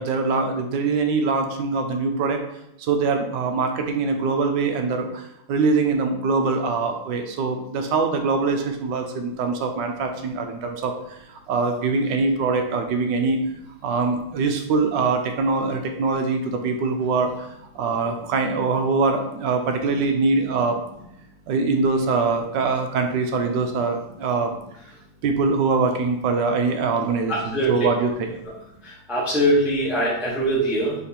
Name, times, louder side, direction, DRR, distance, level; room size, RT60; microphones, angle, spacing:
voice 1, 0.0-2.4 2.8-13.4 13.8-17.5 17.7-20.8 21.5-24.6 25.2-28.3, right 4 dB, 75° right, 5 dB, 1.2 m, -23 dB
voice 2, 27.3-27.7 28.8-31.0, right 1 dB, ahead, -6 dB, 0.7 m, -22 dB
4.2 x 3.0 x 4.2 m, 0.81 s
omnidirectional pair, 2.0 m